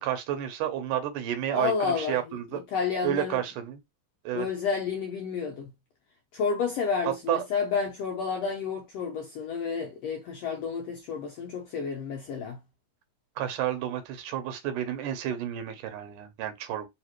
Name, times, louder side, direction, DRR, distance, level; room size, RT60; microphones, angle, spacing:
voice 1, 0.0-2.6 3.0-3.8 4.3-4.5 7.3-7.4 13.4-16.9, right 11 dB, 80° right, 2.3 m, -31 dB
voice 2, 1.5-2.4 2.7-3.4 4.3-5.7 6.3-12.6, left 5 dB, 90° left, 1.4 m, -30 dB
4.9 x 2.8 x 2.9 m
omnidirectional pair, 3.7 m